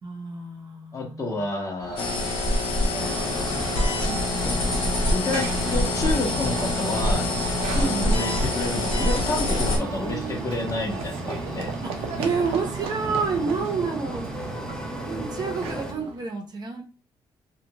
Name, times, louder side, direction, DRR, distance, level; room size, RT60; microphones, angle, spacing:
voice 1, 0.0-1.4 7.7-8.2 10.0-10.4 11.8-14.3 14.9-16.8, right 5 dB, 45° right, 3 dB, 0.8 m, -29 dB
voice 2, 0.9-2.2 3.0-3.5 5.1-7.3 7.8-11.7, left 2 dB, 35° left, 1 dB, 0.9 m, -30 dB
Run / Train, 1.8-16.2, right 6 dB, 85° right, 0.5 m, -36 dB
sound 1, 2.0-9.8, left 2 dB, 70° left, 0.7 m, -25 dB
sound 2, 3.0-15.9, left 1 dB, 5° left, 0.6 m, -36 dB
2.4 x 2.3 x 2.9 m, 0.33 s
cardioid pair, 90°, 10 cm